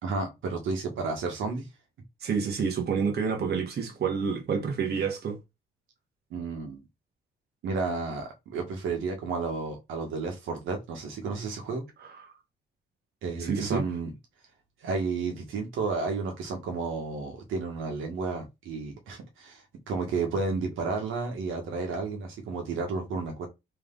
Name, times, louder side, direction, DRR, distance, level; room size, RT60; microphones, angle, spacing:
voice 1, 0.0-1.7 6.3-6.8 7.6-11.8 13.2-14.1 14.8-23.5, right 4 dB, 80° right, 1.5 m, -32 dB
voice 2, 2.2-5.4 12.0-12.3 13.4-13.8, right 6 dB, 55° right, 1.4 m, -29 dB
3.4 x 3.3 x 3.8 m
cardioid pair, 90°, 20 cm